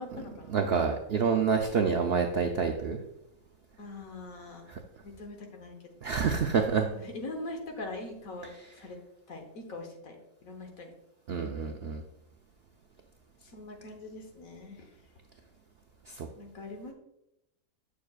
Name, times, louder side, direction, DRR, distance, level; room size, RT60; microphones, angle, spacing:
voice 1, 0.0-0.6 3.8-4.7 5.0-6.2 6.9-8.5 8.8-9.0 9.3-10.2 10.4-11.0 13.5-14.9 16.4-16.9, left 2 dB, 65° left, 3 dB, 1.5 m, -42 dB
voice 2, 0.5-3.0 4.7-4.8 6.0-6.9 11.3-12.0 16.1-16.3, right 5 dB, 70° right, 4 dB, 0.5 m, -27 dB
7.6 x 6.7 x 2.4 m, 0.85 s
omnidirectional pair, 1.6 m